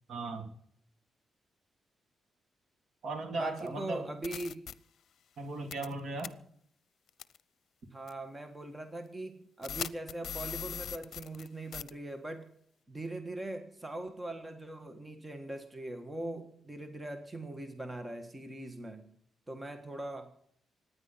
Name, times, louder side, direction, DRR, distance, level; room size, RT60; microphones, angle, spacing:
voice 1, 0.1-0.5 3.0-4.1 5.4-6.4, right 3 dB, 60° right, 6 dB, 3.1 m, -37 dB
voice 2, 3.3-4.7 7.9-12.5 12.9-19.1 19.5-20.4, right 1 dB, 15° right, 7 dB, 1.6 m, -41 dB
sound 1, 3.6-3.7 4.2-4.7 5.7-5.9 6.2-6.3 7.2-7.4 8.1-8.2 9.6-11.5 11.7-11.9, left 9 dB, 65° left, 0.7 m, -39 dB
25.0 x 10.0 x 5.7 m, 0.66 s
cardioid pair, 120°, 0 cm